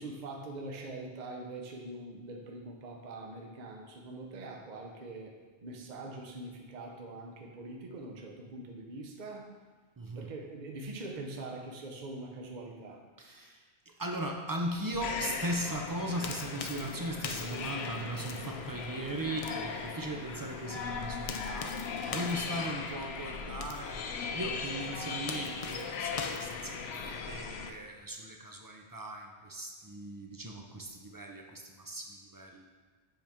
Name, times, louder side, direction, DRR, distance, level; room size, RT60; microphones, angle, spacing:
voice 1, 0.0-5.3 5.6-9.5 10.2-13.0, right 2 dB, 50° right, 1 dB, 0.8 m, -43 dB
voice 2, 10.0-10.3 13.2-21.8 22.1-24.0 24.3-26.8 27.1-32.6, right 1 dB, 30° right, 2 dB, 0.4 m, -38 dB
sound 1, 15.0-27.7, left 5 dB, 80° left, 0.8 m, -39 dB
sound 2, 15.9-27.3, left 5 dB, 50° left, 0.4 m, -45 dB
7.6 x 4.3 x 3.5 m, 1.5 s
omnidirectional pair, 1.1 m